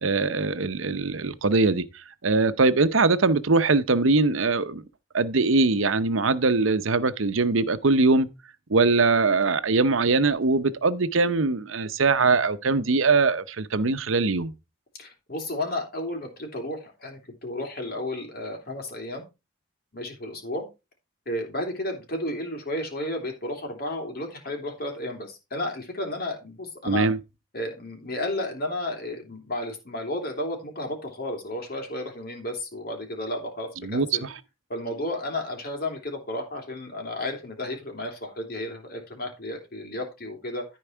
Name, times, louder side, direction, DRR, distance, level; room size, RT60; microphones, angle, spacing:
voice 1, 0.0-1.8 2.2-4.8 5.1-8.3 8.7-14.5 26.9-27.2 33.8-34.3, right 3 dB, 80° right, 0.8 m, -22 dB
voice 2, 15.0-19.2 19.9-20.7 21.2-27.1 27.5-34.2 34.7-40.6, left 1 dB, 50° left, 3.2 m, -32 dB
13.5 x 4.7 x 4.5 m
head